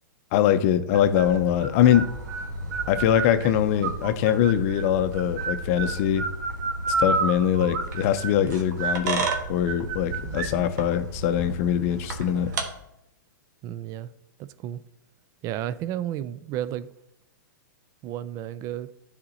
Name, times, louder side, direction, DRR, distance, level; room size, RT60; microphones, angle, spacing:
voice 1, 0.3-2.2 2.9-6.3 6.9-12.5, left 10 dB, 45° left, 0.6 m, -23 dB
sound 1, 0.9-12.6, right 3 dB, 60° right, 1.3 m, -31 dB
voice 2, 13.6-14.1 14.4-14.8 15.4-16.9 18.0-18.9, right 11 dB, 30° right, 0.4 m, -32 dB
12.0 x 4.2 x 2.8 m
hypercardioid pair, 115°, 11 cm